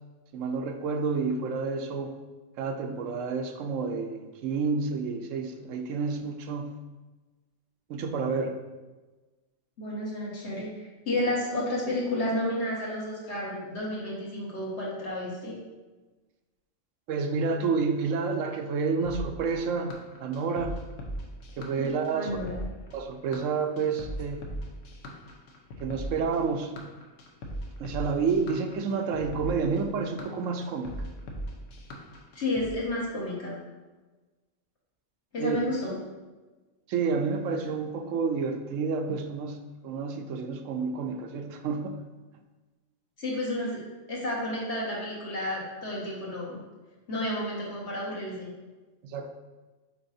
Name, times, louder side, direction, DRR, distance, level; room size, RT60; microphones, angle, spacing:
voice 1, 0.3-2.1 2.6-6.7 7.9-8.5 17.1-20.8 21.6-22.4 22.9-24.4 25.8-26.7 27.8-30.9 35.4-35.6 36.9-42.0 49.0-49.3, right 5 dB, 85° right, 6 dB, 1.0 m, -29 dB
voice 2, 9.8-15.6 21.8-22.6 32.4-33.6 35.3-35.9 43.2-43.8 44.1-46.6 47.1-48.5, left 1 dB, 60° left, -5 dB, 1.9 m, -31 dB
sound 1, 19.0-32.7, equal, 85° left, 1.2 m, -39 dB
7.1 x 5.1 x 2.7 m, 1.2 s
omnidirectional pair, 1.3 m